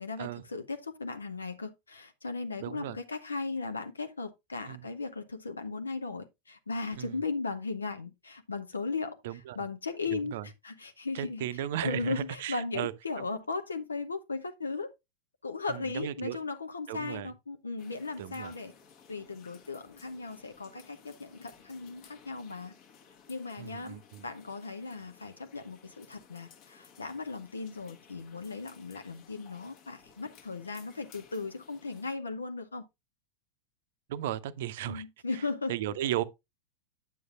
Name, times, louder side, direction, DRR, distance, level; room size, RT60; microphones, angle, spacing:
voice 1, 0.0-9.2 9.6-10.4 10.6-11.4 11.8-14.9 15.4-18.7 19.1-22.7 23.3-32.8 34.9-35.8, left 4 dB, 75° left, 0.7 m, -37 dB
voice 2, 2.6-3.0 4.7-4.9 7.0-7.2 9.2-9.6 10.1-10.5 11.1-13.3 15.7-16.4 16.9-17.3 18.2-18.5 23.6-24.2 34.1-35.0 35.7-36.2, right 12 dB, 55° right, 0.6 m, -35 dB
sound 1, 17.8-32.1, left 7 dB, 40° left, 1.2 m, -58 dB
9.2 x 7.9 x 2.4 m
figure-of-eight pair, 90°, 0 cm